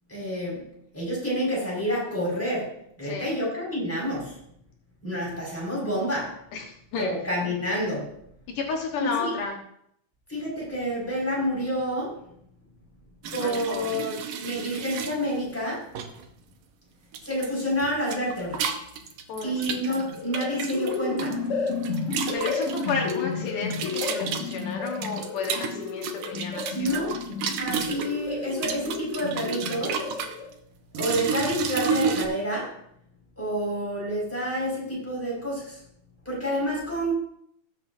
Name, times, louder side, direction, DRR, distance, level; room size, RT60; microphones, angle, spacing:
voice 1, 0.1-0.7 0.9-2.7 3.0-4.4 5.0-6.3 7.0-8.1 9.0-9.3 10.3-12.2 13.3-15.8 17.2-18.6 19.4-21.4 26.7-27.1 27.6-30.1 31.0-32.7 33.4-35.8 36.3-37.1, equal, 5° left, -5 dB, 5.1 m, -28 dB
voice 2, 6.5-7.1 8.5-9.6 13.4-14.1 19.3-20.0 22.3-27.2, left 4 dB, 80° left, 1 dB, 2.9 m, -32 dB
sound 1, 13.2-15.1 15.9-16.2 17.1-17.5 17.8-21.3 21.7-23.1 23.7-28.1 28.5-30.3 30.9-32.3, right 6 dB, 80° right, 2.5 m, -31 dB
sound 2, 20.0-30.5, left 4 dB, 50° left, 2.6 m, -32 dB
19.0 x 7.6 x 2.7 m, 0.70 s
omnidirectional pair, 3.7 m